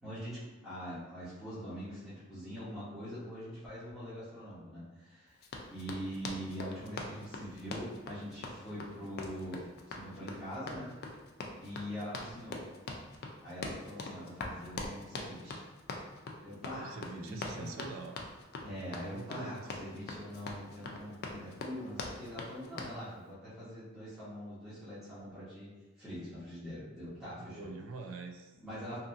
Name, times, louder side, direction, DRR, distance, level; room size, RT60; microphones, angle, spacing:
voice 1, 0.0-5.4 5.7-10.9 11.6-12.6 13.4-15.6 16.4-17.7 18.6-27.7 28.6-29.0, equal, ahead, -14 dB, 0.9 m, -43 dB
Run, 5.4-23.0, left 3 dB, 50° left, 0.3 m, -43 dB
voice 2, 16.8-18.2 19.1-19.6 27.4-28.5, right 3 dB, 75° right, 4 dB, 0.4 m, -44 dB
2.7 x 2.6 x 2.5 m, 1.2 s
head